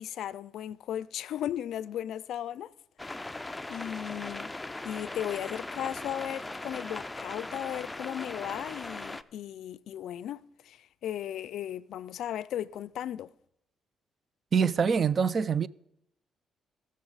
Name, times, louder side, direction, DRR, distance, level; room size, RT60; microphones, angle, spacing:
voice 1, 0.0-2.7 3.0-3.2 3.7-4.5 4.8-13.3, left 11 dB, 75° left, 0.3 m, -36 dB
sound 1, 3.0-9.2, left 2 dB, 15° left, 0.4 m, -39 dB
voice 2, 14.5-15.7, right 6 dB, 45° right, 0.4 m, -25 dB
18.0 x 6.5 x 4.0 m
cardioid pair, 90°, 0 cm